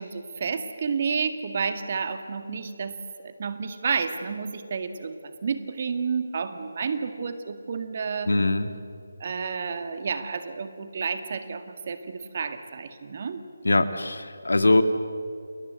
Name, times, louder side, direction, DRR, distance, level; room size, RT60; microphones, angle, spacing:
voice 1, 0.0-3.0 3.2-8.3 9.2-13.4, right 5 dB, 40° right, 9 dB, 1.9 m, -30 dB
voice 2, 8.3-8.7 13.6-14.8, left 2 dB, 70° left, 10 dB, 1.9 m, -21 dB
29.5 x 20.5 x 8.1 m, 2.5 s
figure-of-eight pair, 155°, 0 cm